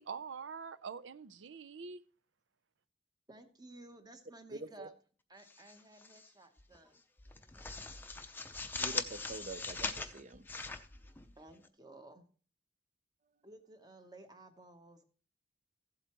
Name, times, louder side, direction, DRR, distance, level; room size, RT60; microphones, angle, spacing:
voice 1, 0.0-2.0, right 5 dB, 80° right, 0.6 m, -44 dB
voice 2, 3.3-4.9 5.3-7.0 11.4-12.3 13.4-15.1, right 2 dB, 20° right, 1.1 m, -55 dB
voice 3, 4.5-4.9 8.8-10.4, right 2 dB, 40° right, 0.6 m, -45 dB
sound 1, 5.4-6.3 6.6-6.8 7.2-11.7, left 3 dB, 10° left, 0.6 m, -41 dB
15.0 x 7.9 x 3.0 m
head